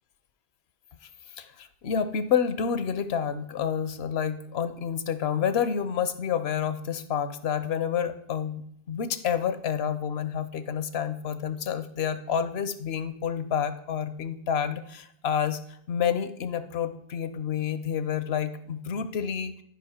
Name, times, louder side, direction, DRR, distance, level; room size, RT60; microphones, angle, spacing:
voice 1, 1.4-15.6 15.9-19.6, left 8 dB, 80° left, 12 dB, 0.9 m, -29 dB
11.5 x 5.2 x 4.3 m, 0.68 s
omnidirectional pair, 1.1 m